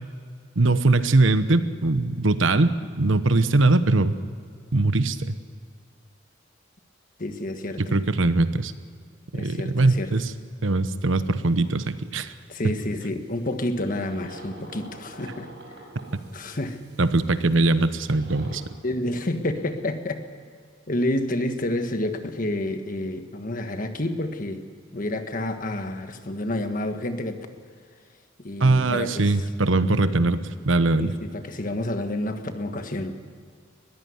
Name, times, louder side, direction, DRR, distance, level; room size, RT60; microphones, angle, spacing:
voice 1, 0.6-4.1 4.7-5.3 7.8-8.7 9.3-10.3 10.6-12.3 17.0-18.6 28.6-30.4 30.6-31.1, right 2 dB, 85° right, 12 dB, 1.0 m, -21 dB
voice 2, 7.2-8.0 9.3-10.1 12.5-15.5 16.3-16.8 18.5-20.2 20.9-24.7 24.9-27.4 28.4-29.4 31.0-33.2, left 1 dB, 45° left, 7 dB, 1.5 m, -29 dB
sound 1, 11.3-12.1 12.5-18.6, right 1 dB, 60° right, 5.7 m, -47 dB
21.0 x 15.0 x 9.6 m, 2.2 s
head